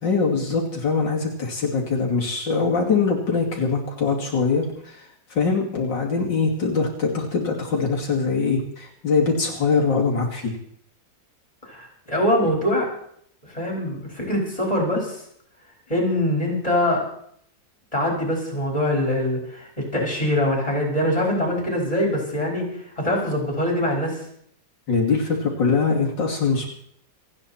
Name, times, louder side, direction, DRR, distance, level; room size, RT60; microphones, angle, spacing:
voice 1, 0.0-10.6 24.9-26.7, left 4 dB, 75° left, -2 dB, 3.4 m, -23 dB
voice 2, 11.6-12.9 13.5-15.2 15.9-17.0 17.9-24.2, left 1 dB, 20° left, -1 dB, 5.1 m, -23 dB
28.0 x 9.5 x 4.4 m, 0.67 s
omnidirectional pair, 2.0 m